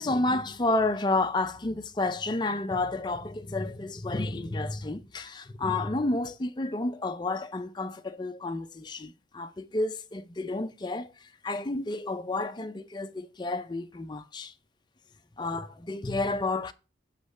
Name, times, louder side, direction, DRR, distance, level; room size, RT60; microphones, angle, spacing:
voice 1, 0.0-11.1 11.4-14.5 15.4-16.7, left 2 dB, 25° left, 0.5 m, -30 dB
8.2 x 3.1 x 6.2 m
head